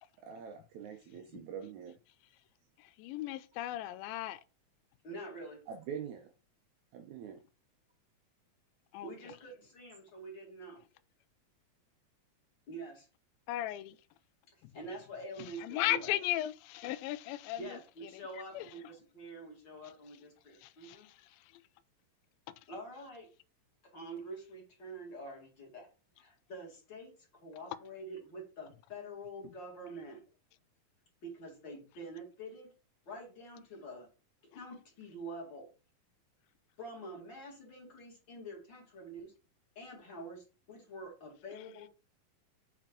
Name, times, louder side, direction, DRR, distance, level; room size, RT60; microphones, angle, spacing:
voice 1, 0.2-1.9 5.7-6.3 6.9-7.4, right 8 dB, 85° right, 1.6 m, -44 dB
voice 2, 2.8-4.4 8.9-9.1 13.5-14.0 14.6-14.7 15.4-17.8 18.1-18.2 18.5-18.7 20.6-21.2, left 15 dB, 85° left, 2.3 m, -36 dB
voice 3, 5.0-5.6 9.0-10.8 12.7-13.1 14.7-16.2 17.6-21.1 22.7-23.3 23.9-25.9 26.2-27.1 27.4-30.2 31.2-32.7 33.1-34.1 34.4-35.7 36.8-39.3 39.8-41.9, right 1 dB, 35° left, 2.4 m, -46 dB
7.1 x 4.5 x 3.7 m
omnidirectional pair, 4.2 m